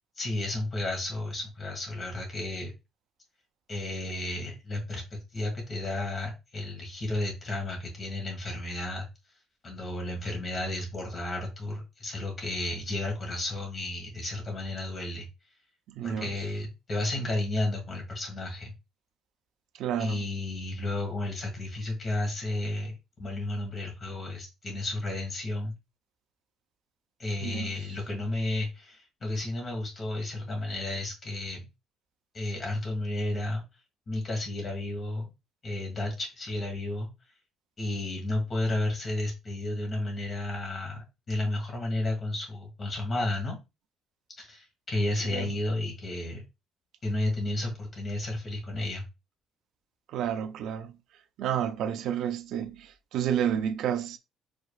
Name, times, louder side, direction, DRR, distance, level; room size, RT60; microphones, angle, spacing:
voice 1, 0.2-2.7 3.7-9.1 9.6-15.3 16.0-18.7 20.0-25.8 27.2-31.6 32.3-33.6 34.1-35.3 35.6-37.1 37.8-43.6 44.4-46.4 47.0-49.0, left 2 dB, 25° left, 1.7 m, -32 dB
voice 2, 16.0-16.3 19.7-20.2 27.4-27.7 45.2-45.5 50.1-51.0 51.4-54.2, right 9 dB, 55° right, 0.5 m, -30 dB
5.0 x 4.0 x 2.4 m
cardioid pair, 180°, 0 cm